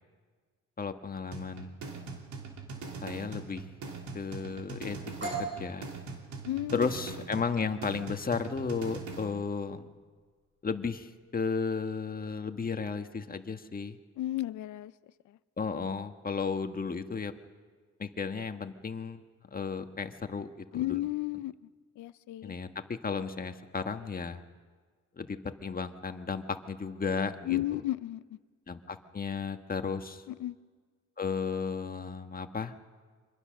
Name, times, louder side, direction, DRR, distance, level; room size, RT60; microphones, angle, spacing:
voice 1, 0.8-1.8 3.0-3.6 4.1-5.9 6.7-9.9 10.6-14.0 15.6-17.3 18.0-19.2 19.5-21.0 22.4-24.4 25.2-27.6 28.7-30.2 31.2-32.7, left 5 dB, 30° left, 7 dB, 1.5 m, -34 dB
sound 1, 1.3-9.3, right 4 dB, 70° right, 3.1 m, -42 dB
sound 2, 5.2-12.8, right 4 dB, 40° right, 7.3 m, -44 dB
voice 2, 6.4-6.9 14.2-14.9 15.3-15.4 20.7-21.5 22.0-22.6 27.5-28.2 30.3-30.6, left 15 dB, 75° left, 15 dB, 0.6 m, -33 dB
25.5 x 21.5 x 6.5 m, 1.5 s
cardioid pair, 90°, 30 cm